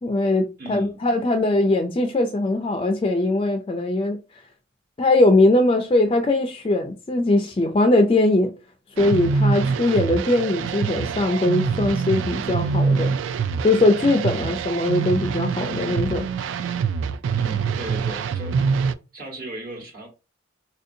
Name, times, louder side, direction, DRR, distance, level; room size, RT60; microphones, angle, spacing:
voice 1, 0.0-4.2 5.0-8.5 9.0-13.1 13.6-16.3, left 2 dB, 30° left, 0.3 m, -20 dB
voice 2, 0.6-1.0 14.3-14.5 17.3-18.6 19.1-20.1, right 1 dB, 50° right, 1.3 m, -36 dB
sound 1, 9.0-18.9, right 5 dB, 80° right, 0.3 m, -25 dB
4.1 x 2.6 x 2.6 m
head